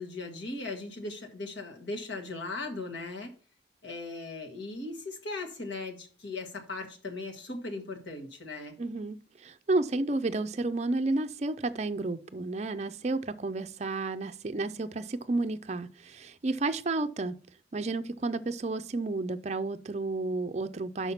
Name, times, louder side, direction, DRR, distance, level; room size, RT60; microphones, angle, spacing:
voice 1, 0.0-3.3 3.8-8.8, left 3 dB, 80° left, 1.7 m, -38 dB
voice 2, 8.8-17.4 17.7-21.1, right 2 dB, 35° right, 0.4 m, -31 dB
5.8 x 5.6 x 5.7 m
head